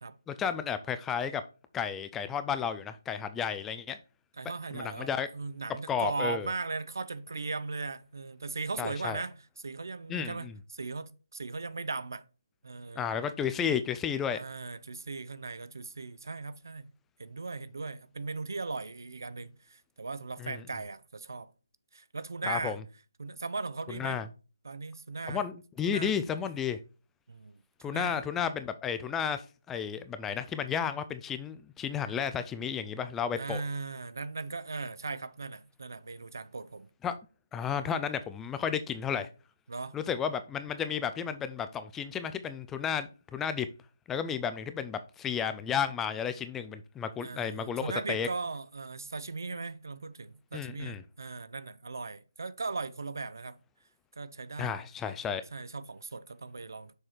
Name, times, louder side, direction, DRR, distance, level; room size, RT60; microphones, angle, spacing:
voice 1, 0.3-1.4 1.7-4.0 4.7-5.3 5.9-6.5 8.8-9.2 10.1-10.5 13.0-14.4 20.4-20.6 22.4-22.8 23.9-24.3 25.3-26.8 27.8-29.4 29.7-33.6 37.0-37.2 37.5-39.3 39.9-43.7 44.1-48.3 50.5-51.0 54.6-55.4, left 7 dB, 10° left, 0.3 m, -32 dB
voice 2, 4.4-12.2 12.6-13.2 14.4-16.9 17.2-21.5 21.9-22.8 23.2-24.2 24.6-25.4 25.8-26.1 27.3-27.5 27.9-28.2 33.4-36.9 39.7-39.9 47.2-53.6 54.2-54.7 55.5-56.9, right 3 dB, 60° right, 0.7 m, -38 dB
6.6 x 4.8 x 4.4 m
figure-of-eight pair, 150°, 2 cm